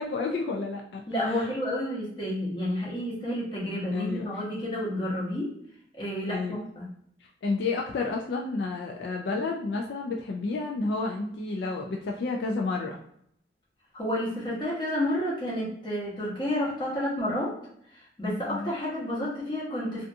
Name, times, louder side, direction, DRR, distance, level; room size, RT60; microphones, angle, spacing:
voice 1, 0.0-1.5 3.9-4.3 6.3-6.7 7.4-13.0 18.5-18.7, left 3 dB, 65° left, 1 dB, 0.3 m, -31 dB
voice 2, 1.1-5.5 6.0-6.8 13.9-17.5 18.2-20.0, left 1 dB, 25° left, -6 dB, 0.9 m, -30 dB
2.5 x 2.3 x 2.5 m, 0.69 s
head